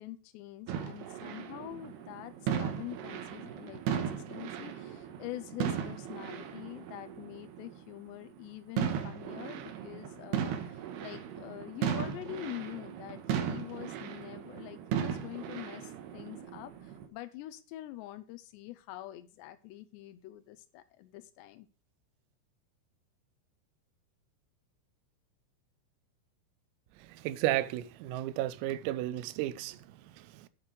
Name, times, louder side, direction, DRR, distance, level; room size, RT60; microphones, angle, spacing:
voice 1, 0.0-21.7, left 15 dB, 90° left, 2.4 m, -45 dB
sound 1, 0.7-7.8 8.4-8.5 8.8-17.1, right 8 dB, 70° right, 2.6 m, -37 dB
voice 2, 27.0-30.5, right 14 dB, 90° right, 3.4 m, -34 dB
8.4 x 8.1 x 6.1 m
omnidirectional pair, 5.9 m